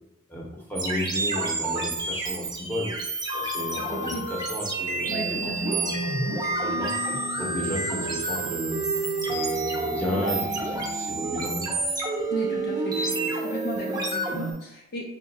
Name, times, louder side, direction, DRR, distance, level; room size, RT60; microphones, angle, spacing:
voice 1, 0.3-2.9 3.3-5.9 6.3-6.9 7.4-8.8 9.2-11.8, left 1 dB, 10° left, -3 dB, 0.9 m, -33 dB
sound 1, 0.8-14.5, right 2 dB, 20° right, 0.7 m, -29 dB
voice 2, 3.9-4.3 5.1-5.8 12.3-15.1, equal, 55° left, -1 dB, 0.6 m, -35 dB
3.7 x 2.5 x 4.2 m, 0.90 s
head